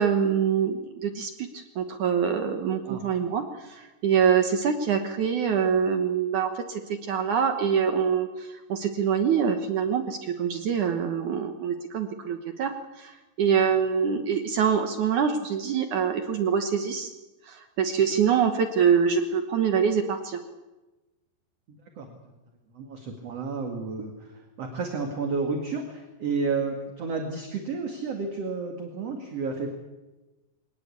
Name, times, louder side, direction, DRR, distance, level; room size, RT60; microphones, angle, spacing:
voice 1, 0.0-3.4 3.7-12.7 13.0-17.1 17.5-20.4, right 7 dB, 65° right, 6 dB, 2.0 m, -25 dB
voice 2, 21.7-22.2 22.7-29.7, right 4 dB, 45° right, 3 dB, 2.5 m, -31 dB
23.5 x 19.0 x 8.4 m, 1.1 s
omnidirectional pair, 5.0 m